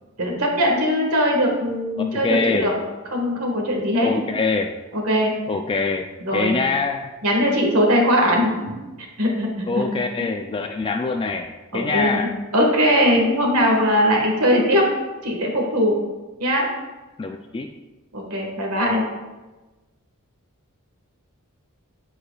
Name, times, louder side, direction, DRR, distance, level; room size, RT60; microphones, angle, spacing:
voice 1, 0.2-2.7 3.1-4.1 4.9-5.3 6.2-6.5 7.2-8.7 9.2-9.8 10.2-10.3 11.7-14.8 15.2-15.9 16.4-16.7 18.1-19.0, equal, 80° right, 0 dB, 1.6 m, -20 dB
voice 2, 2.0-2.7 4.0-4.7 5.5-6.1 6.3-7.1 9.7-12.3 17.2-17.7, left 4 dB, 25° left, 5 dB, 0.3 m, -24 dB
13.0 x 4.8 x 2.3 m, 1.2 s
head